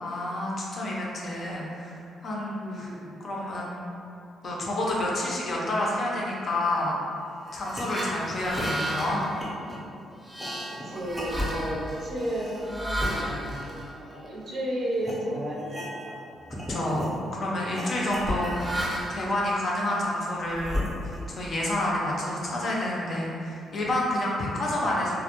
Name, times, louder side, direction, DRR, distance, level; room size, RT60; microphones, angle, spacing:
voice 1, 0.0-2.0 2.2-2.9 3.2-3.8 4.4-7.0 7.5-9.2 10.9-11.0 11.5-11.6 16.7-18.8 19.1-25.1, left 1 dB, 50° left, -4 dB, 0.5 m, -29 dB
voice 2, 2.6-3.1 10.7-16.2, right 1 dB, 55° right, -4 dB, 0.5 m, -33 dB
sound 1, 7.5-14.5 15.0-15.2 15.6-16.2 16.5-17.1 17.7-19.3 19.9-21.4, equal, 5° right, 0.5 m, -33 dB
2.1 x 2.0 x 2.8 m, 2.5 s
cardioid pair, 90°, 0 cm